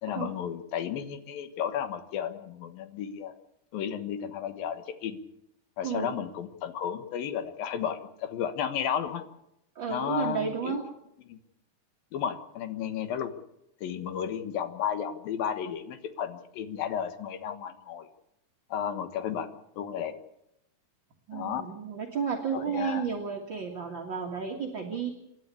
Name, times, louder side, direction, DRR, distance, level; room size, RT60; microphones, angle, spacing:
voice 1, 0.0-3.3 3.7-5.2 5.8-9.2 9.9-10.8 11.3-11.4 12.1-13.3 13.8-18.1 18.7-19.5 19.8-20.1 21.3-21.7 22.5-23.1, left 8 dB, 75° left, 9 dB, 3.1 m, -33 dB
voice 2, 5.8-6.2 9.8-10.8 21.3-25.1, right 6 dB, 40° right, 2 dB, 1.9 m, -32 dB
28.5 x 11.5 x 8.3 m, 0.82 s
omnidirectional pair, 4.1 m